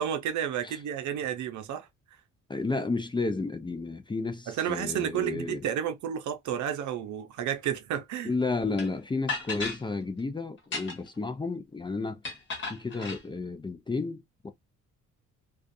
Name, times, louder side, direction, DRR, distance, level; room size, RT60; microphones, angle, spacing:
voice 1, 0.0-1.9 4.5-8.3, right 9 dB, 70° right, 0.6 m, -31 dB
voice 2, 2.5-5.7 8.2-12.2 12.6-14.5, left 3 dB, 15° left, 0.4 m, -32 dB
sound 1, 8.8-8.9 9.3-9.8 10.6-11.2 12.2-13.2, left 4 dB, 40° left, 1.2 m, -34 dB
2.4 x 2.4 x 2.6 m
cardioid pair, 90°, 30 cm